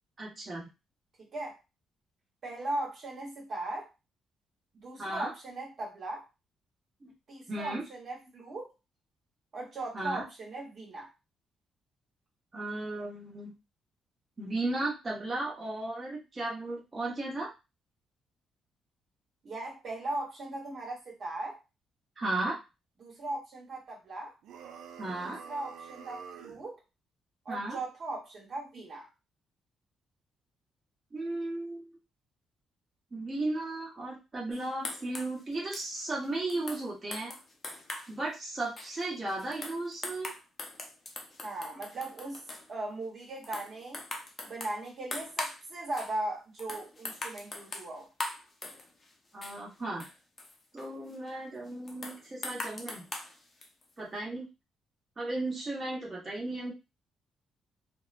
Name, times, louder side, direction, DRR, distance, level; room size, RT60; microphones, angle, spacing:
voice 1, 0.2-0.7 5.0-5.3 7.0-7.1 7.5-7.8 9.9-10.2 12.5-13.5 14.4-17.5 22.2-22.6 25.0-25.4 27.5-27.8 31.1-31.9 33.1-37.3 38.1-40.3 49.3-50.0 50.7-53.0 54.0-54.5 55.2-56.7, right 2 dB, 30° right, -4 dB, 1.1 m, -35 dB
voice 2, 1.2-1.6 2.4-3.9 4.8-6.2 7.3-8.7 9.5-11.1 19.4-21.6 23.0-24.3 25.4-26.8 27.4-29.1 41.4-42.4 42.7-44.0 44.4-48.1, right 2 dB, 55° right, -3 dB, 1.2 m, -38 dB
sound 1, 24.4-26.7, right 6 dB, 80° right, 0.4 m, -47 dB
sound 2, 34.5-38.2 38.6-42.7 43.2-45.6 45.9-46.2 46.6-49.1 49.4-51.3 51.9-53.9, left 2 dB, 35° left, 0.6 m, -41 dB
2.8 x 2.0 x 2.5 m, 0.26 s
cardioid pair, 90°, 0 cm